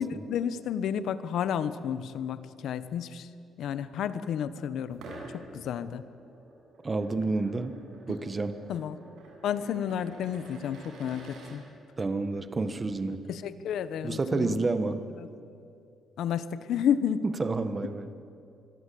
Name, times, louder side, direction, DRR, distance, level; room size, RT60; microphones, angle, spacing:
voice 1, 0.0-3.3 3.6-5.0 5.3-6.0 8.7-9.0 9.4-11.6 13.3-14.7 15.2-15.3 16.2-17.2, left 8 dB, 70° left, 13 dB, 1.2 m, -31 dB
sound 1, 4.9-11.6, right 2 dB, 85° right, 7.1 m, -48 dB
voice 2, 6.8-7.8 8.1-8.6 12.0-13.2 14.0-15.0 17.2-18.1, right 3 dB, 20° right, 10 dB, 1.4 m, -29 dB
26.0 x 22.0 x 8.6 m, 2.5 s
cardioid pair, 145°, 0 cm